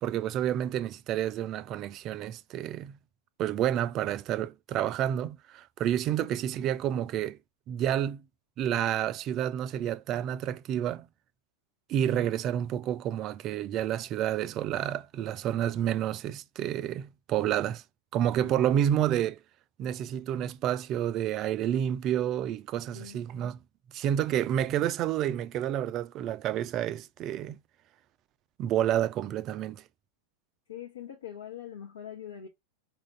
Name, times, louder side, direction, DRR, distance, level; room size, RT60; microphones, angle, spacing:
voice 1, 0.0-2.9 3.4-7.4 7.7-8.2 8.6-11.1 11.9-17.8 18.1-19.4 19.8-23.6 23.9-27.6 28.6-29.8, right 11 dB, 35° right, 0.4 m, -29 dB
voice 2, 30.7-32.5, left 9 dB, 65° left, 0.9 m, -42 dB
5.4 x 2.5 x 3.2 m
figure-of-eight pair, 90°, 0 cm